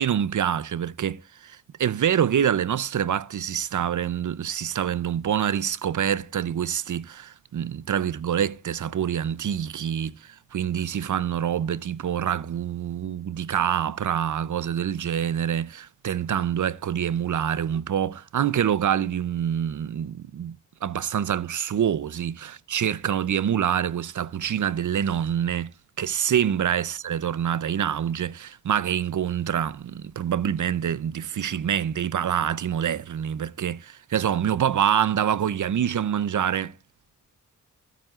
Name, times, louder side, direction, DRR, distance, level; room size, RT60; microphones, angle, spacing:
voice 1, 0.0-25.7 26.0-36.7, right 9 dB, 60° right, 0.5 m, -26 dB
15.5 x 9.1 x 2.4 m
wide cardioid pair, 85°, 33 cm